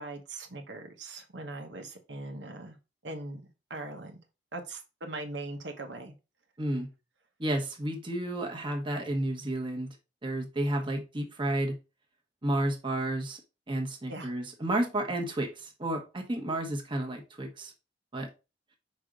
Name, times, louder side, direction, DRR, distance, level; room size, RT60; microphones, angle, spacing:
voice 1, 0.0-2.8 3.0-3.4 3.7-4.2 4.5-6.1 14.1-14.3, right 2 dB, 80° right, 4 dB, 1.3 m, -40 dB
voice 2, 6.6-6.9 7.4-9.9 10.2-11.8 12.4-13.4 13.7-17.7 18.1-18.3, right 1 dB, 30° right, 3 dB, 1.2 m, -31 dB
5.5 x 5.0 x 3.8 m, 0.29 s
head